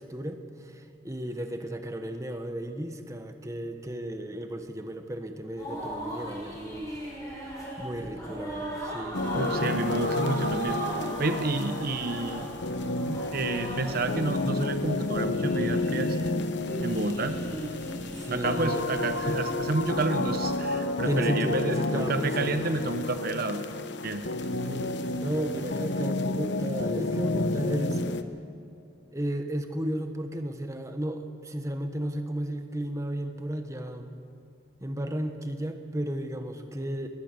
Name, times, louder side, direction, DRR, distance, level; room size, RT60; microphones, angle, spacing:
voice 1, 0.0-7.0 7.8-9.3 18.1-19.4 21.1-22.5 24.6-28.0 29.1-34.2 34.8-37.1, right 1 dB, 15° right, 6 dB, 1.2 m, -34 dB
sound 1, 5.6-20.5, right 1 dB, 20° left, 6.1 m, -38 dB
sound 2, 9.1-28.2, left 2 dB, 60° left, 1.0 m, -30 dB
voice 2, 9.3-10.8 11.2-12.5 13.1-16.3 16.8-17.4 18.3-23.6 24.0-24.3, right 2 dB, 50° right, 8 dB, 0.8 m, -30 dB
21.0 x 20.0 x 6.8 m, 2.7 s
head